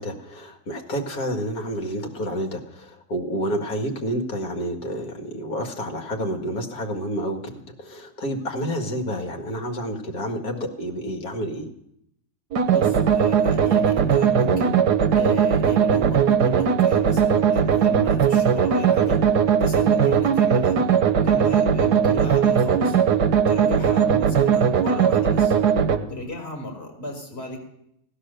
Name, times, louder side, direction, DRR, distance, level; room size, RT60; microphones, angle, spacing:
voice 1, 0.0-11.7, equal, 60° left, 3 dB, 2.4 m, -29 dB
acid soup, 12.5-26.0, right 7 dB, 75° right, 1.6 m, -19 dB
voice 2, 12.7-14.8 15.1-20.8 21.2-23.0 23.5-25.6 26.1-27.6, left 1 dB, 35° left, 0 dB, 4.5 m, -33 dB
17.5 x 11.5 x 6.6 m, 0.76 s
omnidirectional pair, 1.8 m